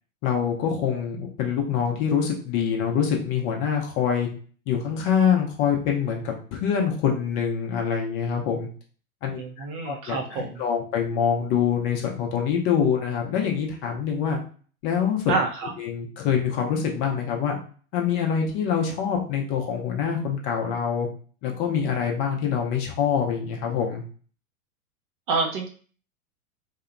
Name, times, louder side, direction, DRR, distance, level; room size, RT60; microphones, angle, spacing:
voice 1, 0.2-4.3 4.7-8.7 9.2-14.4 14.8-15.2 15.8-17.6 17.9-21.1 21.4-24.0, left 7 dB, 35° left, 1 dB, 0.5 m, -25 dB
voice 2, 9.4-10.6 15.3-15.7 25.3-25.7, right 4 dB, 35° right, 2 dB, 0.5 m, -27 dB
2.8 x 2.1 x 2.4 m, 0.42 s
hypercardioid pair, 105°, 44 cm